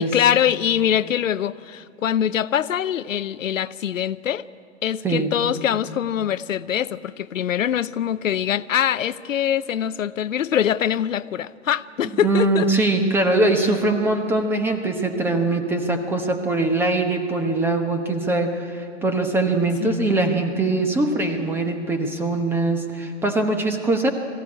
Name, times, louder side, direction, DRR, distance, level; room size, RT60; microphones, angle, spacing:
voice 1, 0.0-4.4 4.8-12.7 19.8-20.0, left 10 dB, 80° left, 16 dB, 0.7 m, -23 dB
voice 2, 12.1-24.1, right 2 dB, 5° right, 5 dB, 1.0 m, -22 dB
20.5 x 15.5 x 9.8 m, 2.6 s
hypercardioid pair, 140°, 39 cm